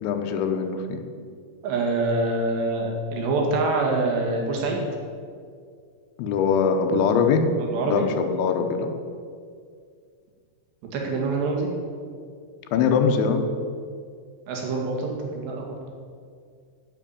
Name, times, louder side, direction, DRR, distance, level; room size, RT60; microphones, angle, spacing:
voice 1, 0.0-1.0 6.2-7.5 7.8-8.9 12.7-13.4, left 6 dB, 80° left, 5 dB, 3.4 m, -22 dB
voice 2, 1.6-4.8 7.7-8.1 10.9-11.7 14.5-15.1 15.4-15.8, right 3 dB, 70° right, 0 dB, 4.0 m, -25 dB
9.8 x 8.4 x 8.7 m, 2.2 s
omnidirectional pair, 5.4 m